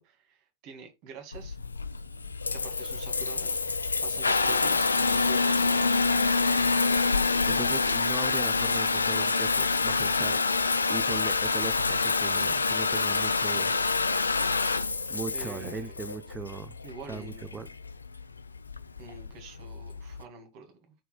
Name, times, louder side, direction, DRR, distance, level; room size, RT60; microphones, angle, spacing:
voice 1, 0.0-1.6 2.5-3.6 4.0-5.9 15.3-16.0 16.8-17.7 19.0-20.9, right 4 dB, 45° right, 2.2 m, -46 dB
Water tap faucet / Bathtub (filling or washing) / Trickle dribble, 1.3-20.2, left 4 dB, 80° left, 0.5 m, -27 dB
voice 2, 7.5-10.4 10.9-13.7 15.1-16.8 17.1-17.7, right 5 dB, 15° right, 0.7 m, -38 dB
14.0 x 4.7 x 2.3 m
figure-of-eight pair, 90°, 0 cm